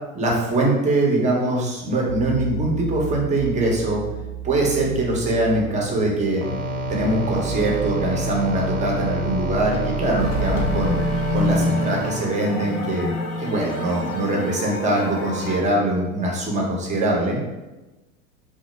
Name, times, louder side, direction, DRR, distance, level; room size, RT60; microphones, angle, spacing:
voice 1, 0.1-4.0 4.4-6.4 6.9-11.0 11.3-13.1 13.4-17.4, right 1 dB, 15° right, -1 dB, 0.6 m, -22 dB
sound 1, 2.1-11.7, right 5 dB, 85° right, 0.7 m, -32 dB
sound 2, 6.4-12.2, right 1 dB, 50° right, 0.5 m, -29 dB
sound 3, 10.2-15.6, left 2 dB, 35° left, 0.6 m, -27 dB
3.0 x 2.0 x 3.0 m, 1.1 s
hypercardioid pair, 90°, 43 cm